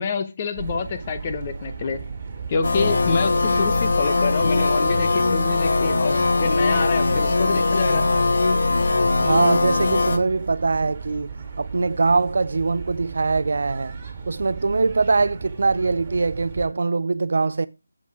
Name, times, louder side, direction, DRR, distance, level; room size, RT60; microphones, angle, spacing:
voice 1, 0.0-2.0 2.5-8.1, left 5 dB, 20° left, 0.8 m, -27 dB
sound 1, 0.5-16.7, right 5 dB, 25° right, 2.5 m, -36 dB
sound 2, 2.6-10.2, left 3 dB, 50° left, 1.0 m, -20 dB
voice 2, 9.2-11.3 11.6-13.9 14.3-17.7, right 3 dB, 55° right, 0.3 m, -22 dB
7.4 x 6.2 x 4.8 m
figure-of-eight pair, 175°, 0 cm